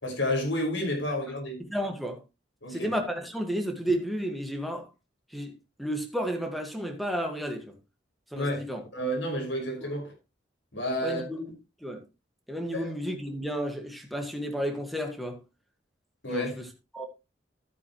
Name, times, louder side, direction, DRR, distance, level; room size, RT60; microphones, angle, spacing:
voice 1, 0.0-1.6 2.6-2.9 8.3-8.6 8.9-10.1 10.7-11.2 12.7-12.9 16.2-16.6, left 1 dB, 75° left, 5.6 m, -30 dB
voice 2, 1.6-2.2 2.7-4.9 5.3-5.5 5.8-7.7 8.3-8.8 9.8-10.0 11.0-11.6 11.8-12.0 12.5-15.4 16.3-16.5 16.9-17.1, equal, ahead, 1.7 m, -32 dB
12.0 x 9.4 x 3.1 m
head